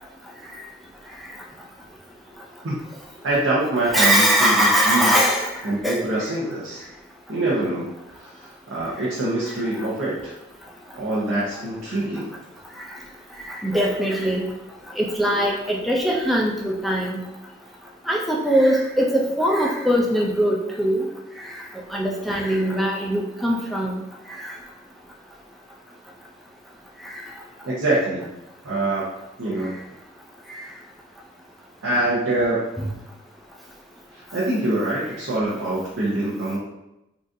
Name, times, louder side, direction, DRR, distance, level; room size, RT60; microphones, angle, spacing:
voice 1, 3.2-5.1 5.6-6.8 7.3-7.9 8.2-10.3 10.9-12.3 27.6-28.3 28.6-29.1 29.4-29.7 31.8-32.6 34.1-36.6, right 1 dB, 90° right, -7 dB, 0.7 m, -24 dB
voice 2, 3.9-6.0 12.9-13.0 13.4-14.4 14.9-17.2 18.1-21.1 21.4-21.6 21.9-24.0 24.4-24.5 27.0-27.2 30.5-30.6 32.8-32.9, equal, ahead, -2 dB, 0.3 m, -21 dB
3.8 x 2.4 x 2.6 m, 0.92 s
head